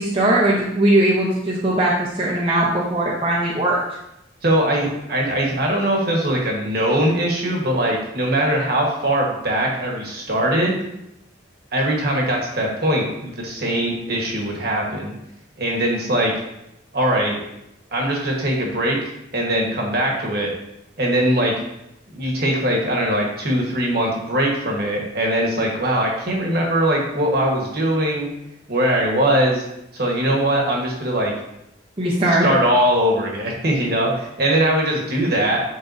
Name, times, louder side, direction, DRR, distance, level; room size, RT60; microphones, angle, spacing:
voice 1, 0.0-3.8 32.0-32.5, right 1 dB, 30° right, -5 dB, 0.8 m, -19 dB
voice 2, 4.4-10.7 11.7-15.1 15.6-16.3 16.9-17.4 17.9-19.0 19.3-20.5 21.0-21.5 22.1-28.3 28.7-29.6 29.9-31.3 32.4-35.6, right 1 dB, 55° right, -1 dB, 1.4 m, -21 dB
10.5 x 3.7 x 2.7 m, 0.84 s
head